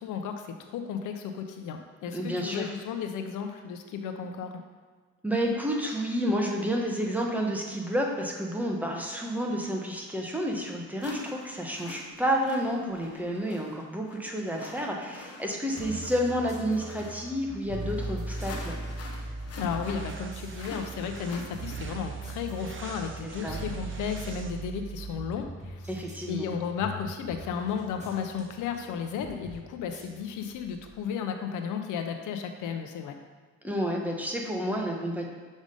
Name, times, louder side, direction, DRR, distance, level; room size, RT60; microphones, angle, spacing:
voice 1, 0.0-4.6 19.6-25.9 26.3-33.2, left 7 dB, 80° left, 5 dB, 0.6 m, -34 dB
voice 2, 2.1-2.7 5.2-18.8 23.2-23.6 25.9-26.5 33.6-35.2, equal, 5° right, 0 dB, 1.1 m, -30 dB
sound 1, 10.1-10.2 11.0-22.1, left 3 dB, 55° left, 1.1 m, -46 dB
sound 2, 15.8-31.0, right 2 dB, 25° right, 1.6 m, -40 dB
sound 3, 19.2-24.8, right 4 dB, 40° right, 0.7 m, -46 dB
6.3 x 3.5 x 5.3 m, 1.5 s
cardioid pair, 90°, 30 cm